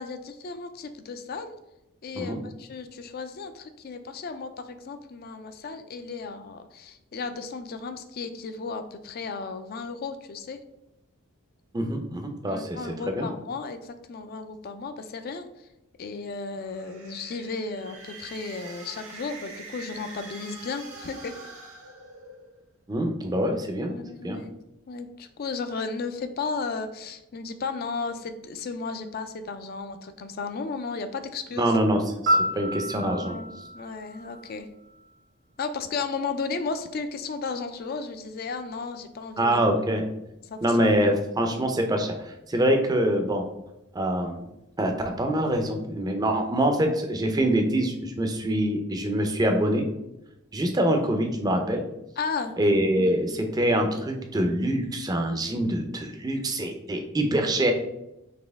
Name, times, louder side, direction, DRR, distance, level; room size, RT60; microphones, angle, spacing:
voice 1, 0.0-1.5 2.0-10.6 12.5-15.5 16.0-21.3 23.9-24.5 24.9-31.8 32.1-32.2 33.1-34.7 35.6-39.6 40.4-40.9 41.4-41.6 52.2-52.5 53.0-53.1, left 4 dB, 45° left, 9 dB, 0.4 m, -34 dB
voice 2, 11.7-13.3 22.9-23.9 24.2-24.4 31.6-33.4 39.4-40.0 40.6-43.5 43.9-44.4 44.8-44.9 45.2-49.9 50.5-51.8 52.6-57.7, right 1 dB, 20° right, 4 dB, 0.5 m, -25 dB
sound 1, 16.6-22.6, right 3 dB, 85° right, 1.0 m, -44 dB
Piano, 32.3-35.2 43.3-43.5, equal, 55° right, 1.0 m, -29 dB
4.2 x 3.0 x 3.5 m, 0.89 s
head